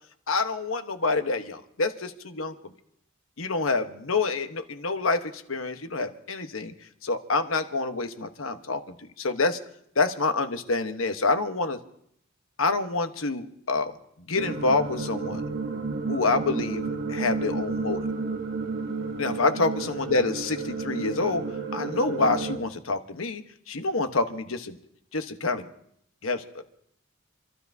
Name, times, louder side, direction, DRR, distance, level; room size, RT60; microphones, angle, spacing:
voice 1, 0.3-2.5 3.4-5.2 5.5-6.7 7.0-8.8 9.2-9.6 10.0-11.8 12.6-13.9 14.3-15.4 16.1-16.8 17.1-18.1 19.2-21.4 21.7-23.4 23.7-24.8 25.1-25.7 26.2-26.4, left 3 dB, 85° left, 8 dB, 1.1 m, -27 dB
sound 1, 14.4-22.6, right 4 dB, 60° right, 1.0 m, -31 dB
28.5 x 13.0 x 2.7 m, 0.71 s
head